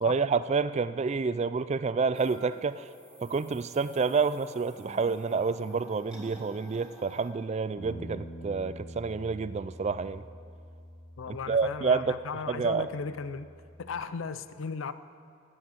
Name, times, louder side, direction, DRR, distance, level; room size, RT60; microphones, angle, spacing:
voice 1, 0.0-2.9 3.2-10.2 11.3-12.2 12.5-12.9, right 5 dB, 30° right, 15 dB, 0.3 m, -29 dB
sound 1, 2.1-7.3, right 1 dB, 5° right, 2.1 m, -50 dB
Bass guitar, 7.8-14.0, equal, 45° left, 1.5 m, -46 dB
voice 2, 11.2-13.5 13.8-14.9, left 5 dB, 70° left, 13 dB, 0.5 m, -36 dB
13.0 x 8.7 x 7.7 m, 2.3 s
head